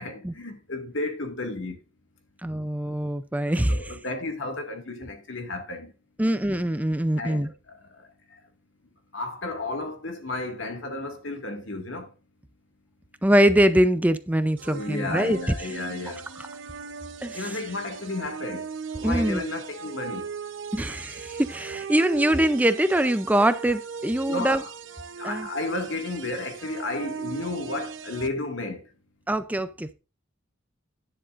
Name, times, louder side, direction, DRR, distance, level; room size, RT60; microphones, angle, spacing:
voice 1, 0.0-1.8 3.4-5.9 7.2-8.4 9.1-12.1 14.6-16.3 17.3-20.3 24.2-24.7 25.2-28.9, left 2 dB, 75° left, 2.1 m, -33 dB
voice 2, 2.4-3.9 6.2-7.5 13.2-15.4 16.4-16.5 17.2-17.6 19.0-19.4 20.7-24.6 25.2-25.5 29.3-29.9, right 1 dB, 10° right, 0.5 m, -23 dB
sound 1, 14.6-28.3, right 6 dB, 75° right, 0.9 m, -38 dB
11.0 x 10.0 x 2.5 m
head